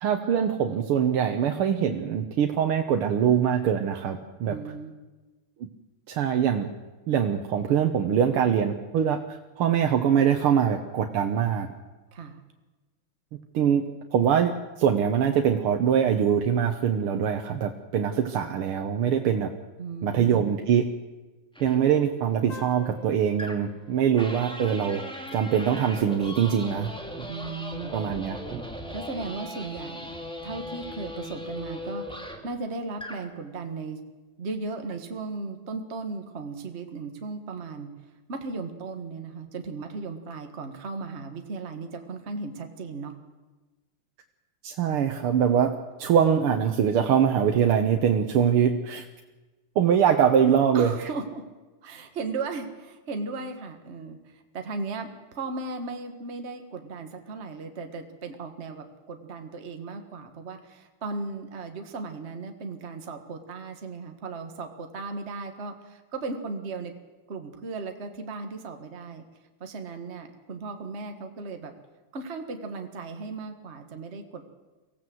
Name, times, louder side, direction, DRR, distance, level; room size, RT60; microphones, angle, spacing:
voice 1, 0.0-4.6 6.1-6.7 7.1-11.7 13.5-14.5 14.8-19.5 20.0-20.9 21.6-25.0 25.3-26.9 27.2-27.3 27.9-28.6 44.6-49.0 49.8-50.9, right 8 dB, 90° right, 4 dB, 2.0 m, -23 dB
voice 2, 4.5-4.9 12.1-12.4 19.8-20.5 27.3-27.9 28.9-30.1 30.4-34.0 34.4-37.9 38.3-43.1 50.7-51.4 51.8-66.9 67.3-69.3 69.6-71.7 72.1-74.5, right 3 dB, 35° right, 5 dB, 1.7 m, -36 dB
sound 1, 21.6-21.8 23.4-23.8 24.2-32.5 32.9-33.3, left 1 dB, ahead, 2.1 m, -38 dB
sound 2, 22.5-25.6, left 3 dB, 60° left, 2.3 m, -48 dB
24.0 x 16.0 x 7.8 m, 1.2 s
omnidirectional pair, 2.3 m